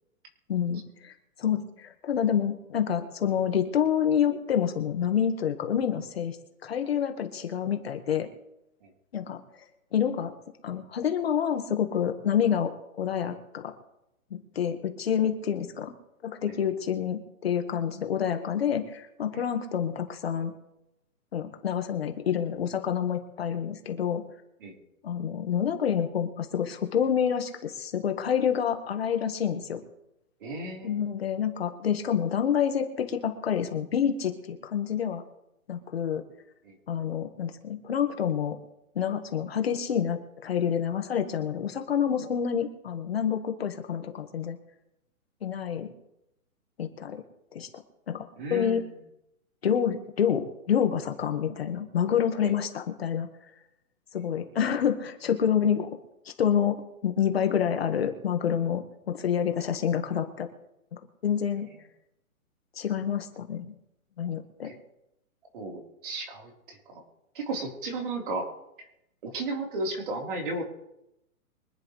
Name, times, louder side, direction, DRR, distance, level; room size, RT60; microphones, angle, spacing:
voice 1, 0.5-1.1 1.4-6.4 6.6-8.3 9.1-9.4 9.9-10.3 10.6-13.7 14.3-15.9 16.2-20.5 21.3-24.2 25.0-29.8 30.8-35.2 35.7-36.2 36.9-38.6 38.9-44.6 45.4-45.9 46.8-47.2 47.5-47.7 48.1-48.8 49.6-53.3 54.1-55.9 56.2-58.8 59.1-60.5 61.2-61.7 62.7-63.6 64.2-64.7, left 8 dB, 45° left, 5 dB, 1.5 m, -28 dB
voice 2, 30.4-31.0 36.6-36.7 48.4-48.8 52.4-52.5 64.6-64.7 65.5-67.0 67.3-68.5 69.2-70.6, right 2 dB, 35° right, 0 dB, 3.8 m, -34 dB
25.0 x 10.5 x 3.2 m, 0.85 s
hypercardioid pair, 175°, 43 cm